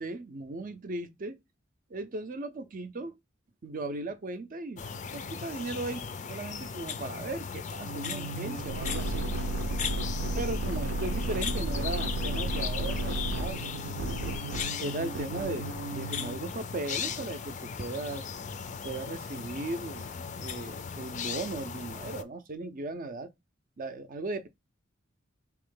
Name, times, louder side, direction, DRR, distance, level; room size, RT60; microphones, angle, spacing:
voice 1, 0.0-1.4 1.9-3.1 3.6-4.8 5.1-9.3 10.3-13.6 14.8-18.3 18.8-23.3 23.8-24.5, right 2 dB, 45° right, 0.5 m, -37 dB
sound 1, 4.8-22.2, left 6 dB, 40° left, 0.4 m, -37 dB
sound 2, 7.8-16.4, right 1 dB, 85° right, 0.7 m, -33 dB
3.5 x 3.0 x 3.7 m
head